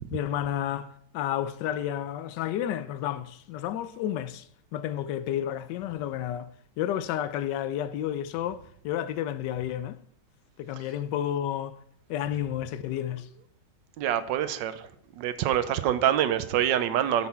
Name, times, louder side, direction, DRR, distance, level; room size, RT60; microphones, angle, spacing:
voice 1, 0.1-6.5 6.8-10.0 10.6-11.8 12.1-13.3, left 11 dB, 80° left, 1.2 m, -31 dB
voice 2, 14.0-14.9 15.2-17.3, right 10 dB, 90° right, 1.3 m, -25 dB
9.3 x 6.0 x 4.3 m
omnidirectional pair, 1.9 m